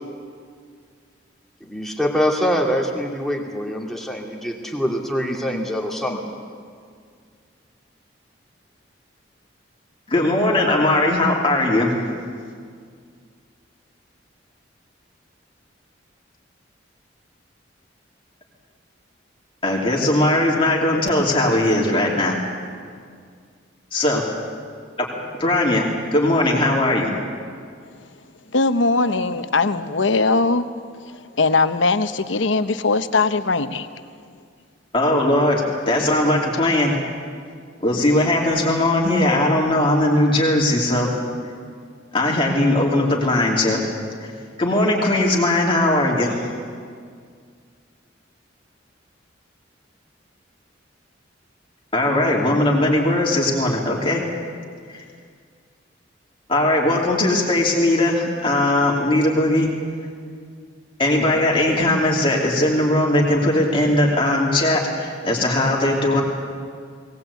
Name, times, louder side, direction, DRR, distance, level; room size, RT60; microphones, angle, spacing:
voice 1, 1.6-6.3, equal, ahead, -1 dB, 2.5 m, -24 dB
voice 2, 10.1-11.9 19.6-22.4 23.9-24.3 25.0-25.8 26.1-27.1 34.9-36.9 37.8-41.1 42.1-43.8 44.2-44.3 44.6-46.4 51.9-54.2 54.9-55.0 56.5-59.7 61.0-66.2, left 1 dB, 30° left, -2 dB, 2.9 m, -19 dB
voice 3, 28.5-30.7 31.1-33.9, left 3 dB, 80° left, 11 dB, 0.9 m, -20 dB
20.5 x 18.5 x 8.4 m, 2.1 s
head